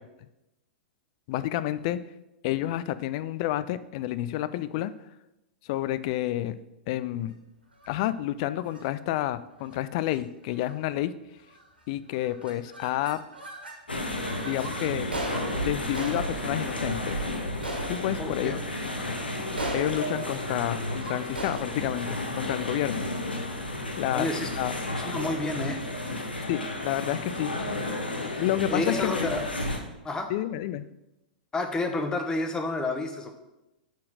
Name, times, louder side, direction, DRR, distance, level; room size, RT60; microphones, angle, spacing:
voice 1, 1.3-2.0 2.4-4.9 5.7-6.6 6.9-7.4 7.9-11.1 11.9-13.2 14.4-15.1 15.6-17.2 17.9-18.6 19.7-23.1 24.0-24.3 24.6-24.7 26.5-27.5 28.4-29.4 30.3-30.9, left 13 dB, 40° left, 14 dB, 0.4 m, -29 dB
sound 1, 7.7-8.1 8.6-8.9 9.6-9.8 10.1-10.2 10.5-10.9 11.5-11.8 12.1-13.8 14.2-23.4, right 1 dB, 80° right, 1.8 m, -39 dB
sound 2, 13.9-29.8, left 1 dB, 80° left, 1.2 m, -32 dB
voice 2, 18.1-18.5 24.1-24.5 24.9-25.8 28.7-29.4 30.0-30.3 31.5-33.4, left 2 dB, 15° left, 5 dB, 1.1 m, -30 dB
6.4 x 5.6 x 6.5 m, 0.95 s
figure-of-eight pair, 100°, 5 cm